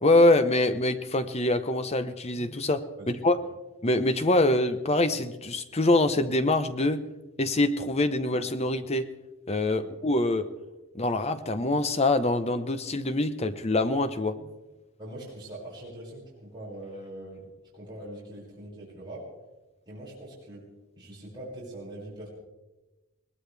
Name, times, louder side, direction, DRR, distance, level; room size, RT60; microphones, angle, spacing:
voice 1, 0.0-3.4 3.8-7.0 7.4-9.1 9.5-10.5 10.9-14.3, left 2 dB, 30° left, 10 dB, 0.9 m, -24 dB
voice 2, 3.0-3.3 9.7-9.9 15.0-19.3 19.9-20.6 21.0-22.3, right 1 dB, 20° right, -8 dB, 6.2 m, -42 dB
21.5 x 19.0 x 3.4 m, 1.1 s
head